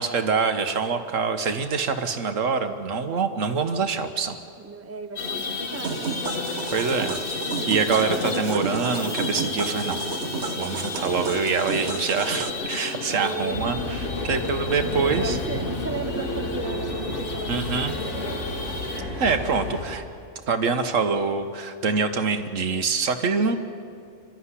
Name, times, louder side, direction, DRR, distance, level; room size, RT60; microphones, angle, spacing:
voice 1, 0.0-4.4 6.7-7.2 7.7-10.1 10.6-13.8 14.2-15.4 17.5-17.9 19.2-20.0 20.5-23.6, right 5 dB, 85° right, 8 dB, 1.6 m, -25 dB
voice 2, 4.6-7.1 13.2-13.6 14.8-18.6, right 4 dB, 15° right, 9 dB, 0.7 m, -36 dB
sound 1, 5.2-19.0, left 3 dB, 45° left, 1.5 m, -32 dB
sound 2, 5.8-12.5, right 6 dB, 60° right, 1.3 m, -32 dB
sound 3, 13.5-19.9, left 1 dB, 70° left, 3.0 m, -31 dB
25.0 x 13.0 x 10.0 m, 2.4 s
omnidirectional pair, 1.3 m